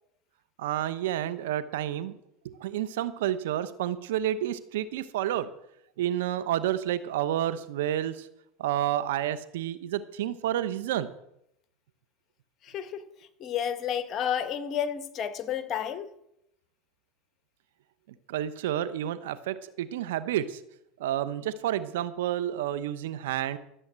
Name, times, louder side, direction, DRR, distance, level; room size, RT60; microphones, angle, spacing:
voice 1, 0.6-2.1 2.6-5.5 6.0-8.3 8.6-11.1 18.3-20.6 21.0-23.6, right 11 dB, 85° right, 1.0 m, -30 dB
voice 2, 12.6-13.0 13.4-16.1, left 9 dB, 45° left, 1.3 m, -31 dB
13.5 x 7.9 x 7.5 m
supercardioid pair, 110°, 0 cm